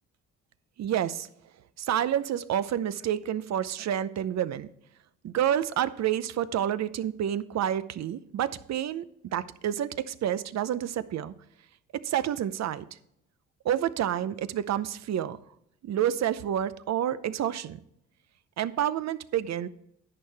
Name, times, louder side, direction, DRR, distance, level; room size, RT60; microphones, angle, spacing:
voice 1, 0.8-1.3 1.8-4.7 5.2-9.0 9.3-11.3 12.0-12.8 13.6-15.4 15.8-17.8 18.6-19.7, right 10 dB, 60° right, 15 dB, 0.7 m, -29 dB
11.0 x 8.6 x 3.4 m, 0.75 s
cardioid pair, 90°, 30 cm